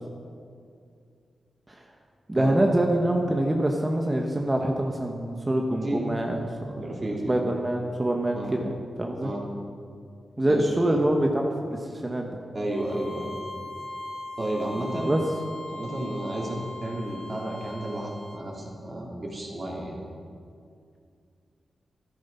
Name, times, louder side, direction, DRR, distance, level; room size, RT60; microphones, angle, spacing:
voice 1, 2.3-6.8 7.2-8.7 9.0-9.3 10.4-12.3 15.0-15.2, right 1 dB, 20° right, 1 dB, 1.1 m, -25 dB
voice 2, 6.8-7.4 8.3-8.5 9.2-9.4 10.4-10.7 12.5-13.3 14.4-15.2 15.7-20.0, right 1 dB, 35° right, -3 dB, 3.4 m, -32 dB
Bowed string instrument, 12.7-18.4, left 2 dB, 20° left, 2.5 m, -40 dB
13.5 x 12.5 x 5.7 m, 2.3 s
wide cardioid pair, 115°, 0 cm